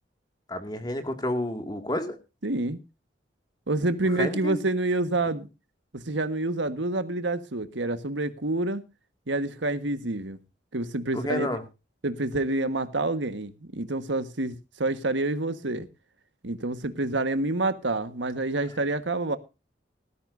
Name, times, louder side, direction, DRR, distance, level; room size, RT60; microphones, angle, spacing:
voice 1, 0.5-2.2 4.2-4.6 11.1-11.6, left 1 dB, 20° left, 2.2 m, -30 dB
voice 2, 2.4-2.8 3.7-5.5 5.9-8.8 9.3-10.4 10.7-11.6 12.0-15.9 16.4-19.4, right 2 dB, 85° right, 1.5 m, -28 dB
18.5 x 13.0 x 2.6 m
head